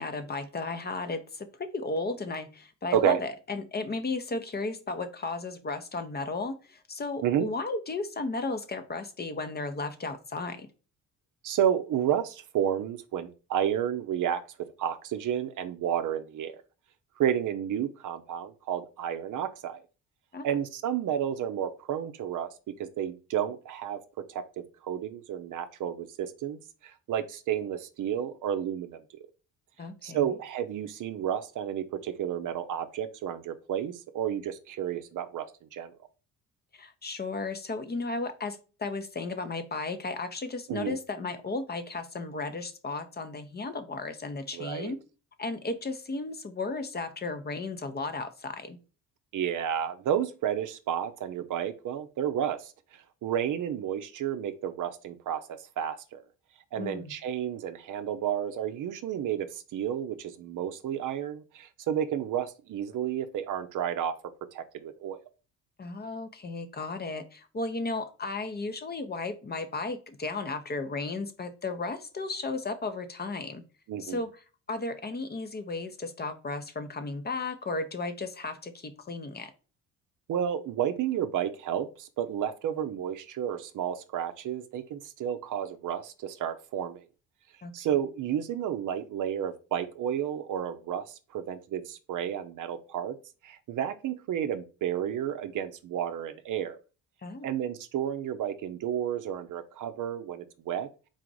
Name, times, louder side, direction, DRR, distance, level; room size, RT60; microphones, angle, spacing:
voice 1, 0.0-10.7 20.3-20.5 29.8-30.3 36.7-45.0 45.4-48.8 56.8-57.1 65.8-73.6 74.0-79.5 87.6-87.7 97.2-97.5, left 3 dB, 25° left, 9 dB, 0.7 m, -34 dB
voice 2, 11.4-14.4 14.8-16.5 17.2-19.8 20.4-22.5 22.8-24.0 24.3-29.0 30.0-35.9 40.7-41.0 44.5-44.9 49.3-52.7 53.2-55.4 55.8-56.2 56.7-64.1 64.5-65.2 73.9-74.2 80.3-87.0 87.7-91.1 91.3-93.2 93.4-96.8 97.4-100.9, right 9 dB, 55° right, 10 dB, 0.6 m, -31 dB
4.1 x 2.5 x 4.6 m, 0.34 s
supercardioid pair, 70°, 38 cm